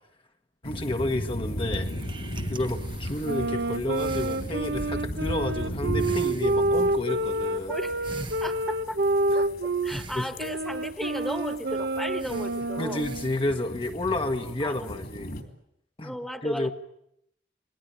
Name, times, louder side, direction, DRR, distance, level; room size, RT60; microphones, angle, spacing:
sound 1, 0.6-15.4, equal, 60° left, 3.5 m, -37 dB
voice 1, 0.6-1.9 2.5-7.7 9.3-9.4 9.9-10.3 12.8-15.3 16.0-16.2 16.4-16.7, left 1 dB, 30° left, 4 dB, 1.4 m, -30 dB
sound 2, 1.2-3.6 3.9-5.0 5.3-5.7 6.0-9.3 9.9-11.4 11.7-11.8 12.2-13.5, right 2 dB, 30° right, 1.1 m, -44 dB
sound 3, 3.2-10.0 10.4-13.4, right 2 dB, 65° right, 1.1 m, -28 dB
voice 2, 8.4-9.0 9.3-13.0 14.3-14.9 16.0-16.7, equal, ahead, 8 dB, 1.7 m, -35 dB
28.0 x 20.0 x 9.7 m, 0.77 s
head